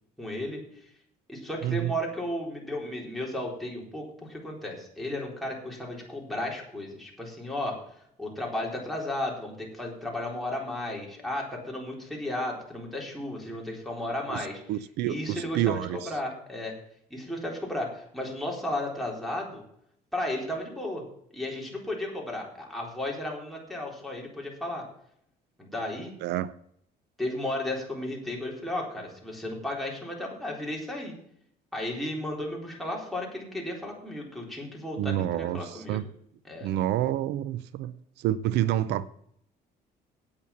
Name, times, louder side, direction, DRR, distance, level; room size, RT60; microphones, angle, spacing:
voice 1, 0.2-0.9 1.3-14.6 15.1-16.7 17.1-19.6 20.1-21.0 21.3-24.8 25.6-26.1 27.2-31.1 31.7-36.0 36.4-36.7, left 1 dB, ahead, -3 dB, 3.9 m, -34 dB
voice 2, 1.6-1.9 14.3-16.1 26.2-26.5 35.0-36.1 36.6-39.1, right 12 dB, 80° right, 16 dB, 0.5 m, -29 dB
8.7 x 8.6 x 7.1 m, 0.70 s
cardioid pair, 110°, 17 cm